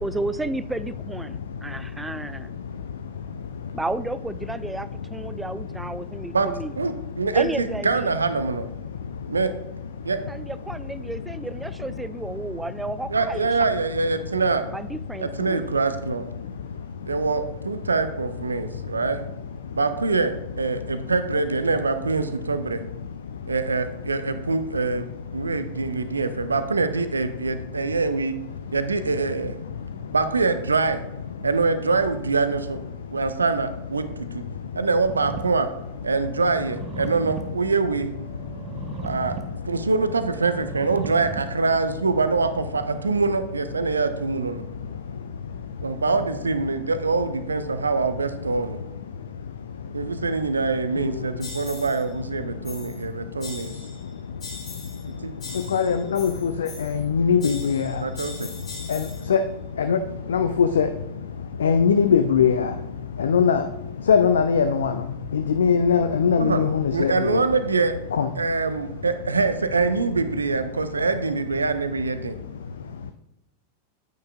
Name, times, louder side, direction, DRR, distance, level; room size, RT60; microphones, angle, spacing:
voice 1, 0.0-2.6 3.7-6.7 7.3-8.1 10.3-13.5 14.7-15.8, right 2 dB, 5° right, 14 dB, 0.3 m, -32 dB
voice 2, 6.8-8.6 9.3-9.5 10.0-10.2 13.1-14.6 15.2-16.2 17.1-19.2 19.7-22.8 23.5-25.1 25.3-28.3 28.7-29.6 30.1-31.0 31.4-32.8 33.1-34.1 34.3-34.4 34.8-35.7 36.0-38.1 39.0-39.4 39.7-44.6 45.8-48.8 49.9-53.7 55.2-55.3 58.0-58.5 66.4-66.6 66.9-67.9 68.4-72.3, right 4 dB, 75° right, 10 dB, 0.5 m, -24 dB
sound 1, 35.1-43.1, right 4 dB, 25° right, 1.0 m, -39 dB
sound 2, 51.4-52.0 52.6-53.0 53.4-54.0 54.4-55.1 55.4-57.1 57.4-59.3, left 4 dB, 30° left, 3.1 m, -41 dB
voice 3, 55.7-57.9 58.9-59.0 59.3-59.4 59.8-60.0 60.3-60.9 61.6-62.7 63.2-63.6 64.1-64.9 65.3-67.4 68.1-68.3, left 6 dB, 65° left, 9 dB, 0.4 m, -20 dB
9.2 x 9.2 x 2.3 m, 0.91 s
figure-of-eight pair, 90°, 0 cm